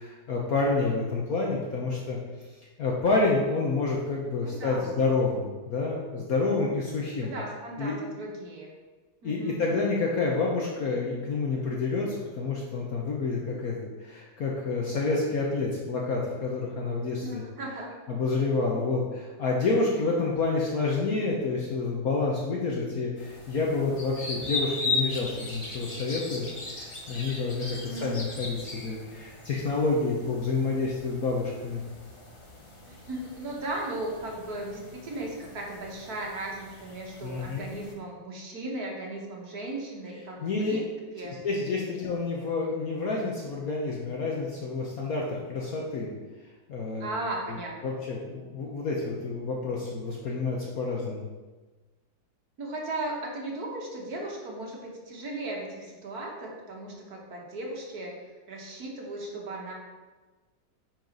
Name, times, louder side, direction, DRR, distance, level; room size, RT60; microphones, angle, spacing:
voice 1, 0.0-2.2 2.8-7.3 7.8-8.0 9.2-17.4 18.1-31.8 37.2-37.7 40.4-40.8 41.2-46.1 46.7-47.1 47.5-47.6 47.8-51.3, left 3 dB, 55° left, -2 dB, 1.2 m, -28 dB
voice 2, 4.4-4.9 7.2-8.7 9.2-9.7 17.2-17.9 27.7-28.2 32.9-40.8 41.1-41.4 47.0-48.0 52.6-58.1 58.5-59.7, right 2 dB, 55° right, -1 dB, 1.7 m, -36 dB
sound 1, 23.2-37.9, left 3 dB, 25° left, 0.7 m, -38 dB
5.9 x 5.2 x 5.2 m, 1.3 s
omnidirectional pair, 2.1 m